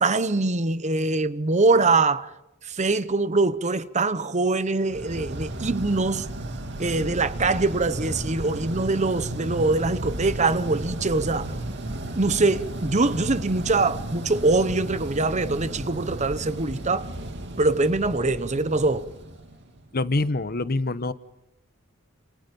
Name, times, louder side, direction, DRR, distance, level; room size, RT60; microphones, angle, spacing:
voice 1, 0.0-2.3 2.6-6.3 6.8-11.5 12.2-17.1 17.6-19.1, right 3 dB, 35° right, 1.0 m, -23 dB
sound 1, 4.9-19.9, right 1 dB, 60° right, 2.5 m, -34 dB
voice 2, 19.9-21.1, left 2 dB, 50° left, 1.0 m, -25 dB
29.0 x 28.0 x 5.4 m
head